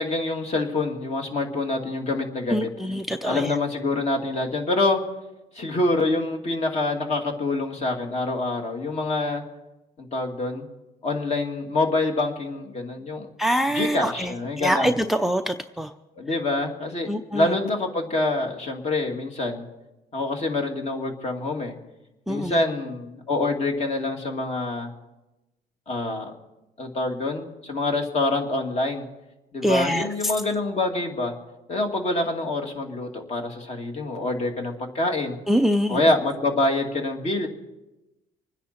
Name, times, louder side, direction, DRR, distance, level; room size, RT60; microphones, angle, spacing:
voice 1, 0.0-2.7 3.2-5.0 5.5-9.4 10.0-10.7 11.0-13.3 13.7-14.9 16.2-19.6 20.1-21.7 22.3-24.9 25.9-26.3 26.8-29.1 29.5-31.3 31.7-35.4 35.9-37.5, left 2 dB, 40° left, 2 dB, 2.5 m, -26 dB
voice 2, 2.5-3.5 13.4-14.3 14.6-15.9 17.1-17.5 22.3-22.6 29.6-30.1 35.5-36.0, equal, ahead, 9 dB, 0.5 m, -24 dB
25.5 x 10.0 x 4.4 m, 0.99 s
cardioid pair, 110°, 17 cm